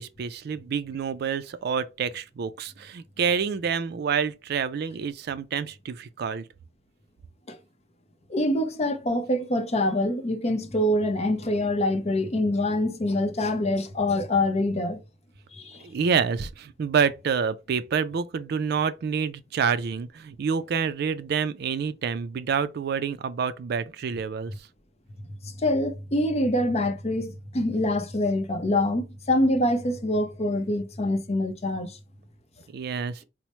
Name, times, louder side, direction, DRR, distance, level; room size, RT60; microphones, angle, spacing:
voice 1, 0.0-6.5 15.8-24.5 32.7-33.2, right 6 dB, 60° right, 0.3 m, -28 dB
voice 2, 8.3-15.0 15.6-15.8 25.4-31.9, left 1 dB, 35° left, 0.6 m, -25 dB
4.3 x 2.0 x 2.9 m
head